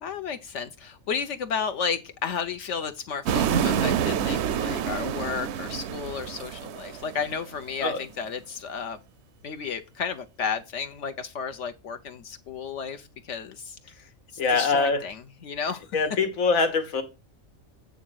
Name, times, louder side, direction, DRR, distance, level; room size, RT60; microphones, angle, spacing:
voice 1, 0.0-9.0 9.4-14.1 14.5-16.0, left 6 dB, 65° left, 0.9 m, -33 dB
sound 1, 3.2-7.5, right 8 dB, 65° right, 0.8 m, -27 dB
voice 2, 14.4-15.0 15.9-17.0, left 4 dB, 85° left, 1.6 m, -23 dB
8.3 x 3.8 x 6.1 m
omnidirectional pair, 1.4 m